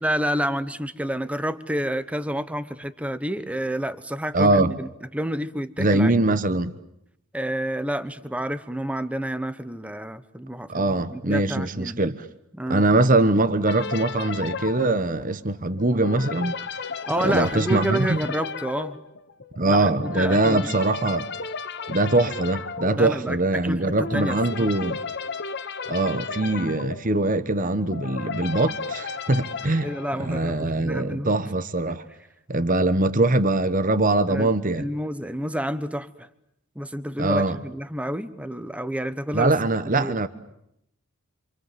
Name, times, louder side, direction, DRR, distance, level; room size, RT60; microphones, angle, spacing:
voice 1, 0.0-6.2 7.3-12.0 12.5-12.8 17.1-19.0 19.7-20.6 22.9-24.7 29.8-31.3 34.3-34.5 34.8-36.3 36.7-39.5 40.0-40.2, right 1 dB, 5° right, 1.2 m, -29 dB
voice 2, 4.3-4.7 5.8-6.7 10.7-12.2 12.7-16.6 17.2-18.2 19.6-21.3 21.9-25.0 25.9-29.9 30.2-32.0 32.5-34.9 37.2-37.6 39.3-40.3, right 2 dB, 40° right, 1.1 m, -22 dB
sound 1, 13.7-30.8, left 5 dB, 50° left, 1.1 m, -34 dB
28.0 x 26.5 x 7.6 m
head